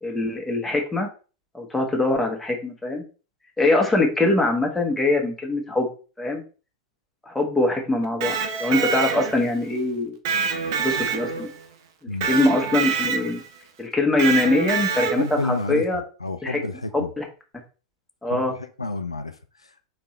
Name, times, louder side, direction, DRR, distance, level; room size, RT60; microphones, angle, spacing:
voice 1, 0.0-1.1 1.5-3.0 3.6-5.9 6.2-6.4 7.3-10.1 10.8-11.5 12.2-13.4 13.8-16.0 16.4-16.6 16.9-17.2 18.2-18.5, left 2 dB, 5° left, 1.4 m, -23 dB
Electric guitar, 8.0-9.6 10.3-11.6 12.2-13.5 14.2-15.4, right 6 dB, 55° right, 0.8 m, -26 dB
voice 2, 15.2-17.1 18.3-19.9, left 2 dB, 85° left, 0.4 m, -31 dB
4.2 x 3.4 x 3.2 m
figure-of-eight pair, 90°, 3 cm